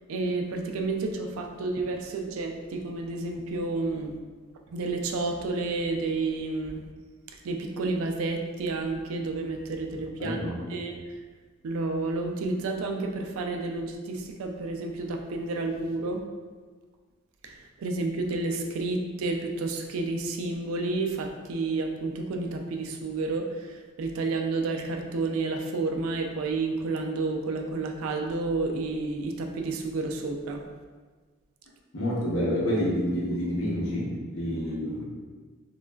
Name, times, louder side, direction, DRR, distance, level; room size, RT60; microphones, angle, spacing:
voice 1, 0.1-4.1 4.7-6.8 7.3-10.4 10.7-11.0 11.6-16.2 17.4-30.6, right 3 dB, 75° right, 4 dB, 0.3 m, -30 dB
voice 2, 10.2-10.7 31.9-35.0, equal, 75° left, -5 dB, 0.8 m, -28 dB
3.0 x 2.3 x 2.2 m, 1.4 s
head